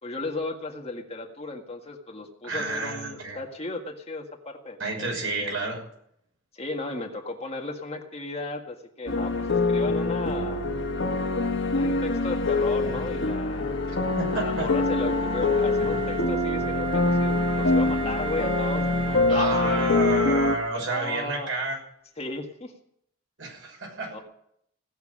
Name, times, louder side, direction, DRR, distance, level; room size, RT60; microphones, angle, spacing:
voice 1, 0.0-5.1 5.4-5.6 6.5-10.7 11.7-14.0 14.3-19.9 20.9-21.5 22.2-22.7 24.1-24.2, left 2 dB, 30° left, 2 dB, 1.7 m, -35 dB
voice 2, 2.4-3.4 4.8-5.8 14.2-14.7 19.3-21.8 23.4-24.2, right 2 dB, 80° right, 0 dB, 6.0 m, -30 dB
sound 1, 9.1-20.6, left 2 dB, 70° left, 1.3 m, -25 dB
Wind instrument woodwind instrument, 13.7-21.6, right 6 dB, 25° right, 0.7 m, -37 dB
17.0 x 7.1 x 10.0 m, 0.72 s
head